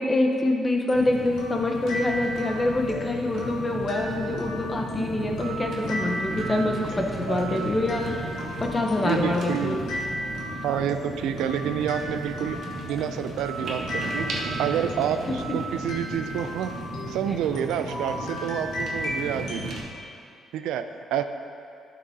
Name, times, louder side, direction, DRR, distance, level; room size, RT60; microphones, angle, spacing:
voice 1, 0.0-8.3 8.6-9.8, left 2 dB, 25° left, 2 dB, 0.9 m, -25 dB
sound 1, 0.9-19.8, equal, 85° left, 1.6 m, -36 dB
sound 2, 0.9-19.8, right 1 dB, 70° right, 1.2 m, -35 dB
voice 2, 7.3-7.7 9.0-9.8 10.6-12.6 12.8-14.3 14.6-16.7 17.1-19.8 20.5-21.2, right 9 dB, 90° right, 9 dB, 0.4 m, -28 dB
12.0 x 6.2 x 2.8 m, 2.4 s
cardioid pair, 90°, 0 cm